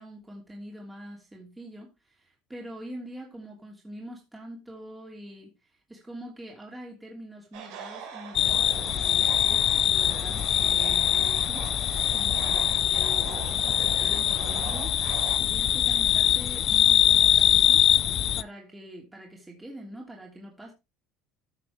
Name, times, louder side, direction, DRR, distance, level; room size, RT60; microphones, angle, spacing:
voice 1, 0.0-14.9 15.4-17.8 18.3-20.7, right 1 dB, 10° right, 3.0 m, -44 dB
sound 1, 7.5-15.4, right 7 dB, 75° right, 3.4 m, -41 dB
sound 2, 8.3-18.4, left 11 dB, 50° left, 0.5 m, -23 dB
14.5 x 6.2 x 3.2 m
supercardioid pair, 95°, 0 cm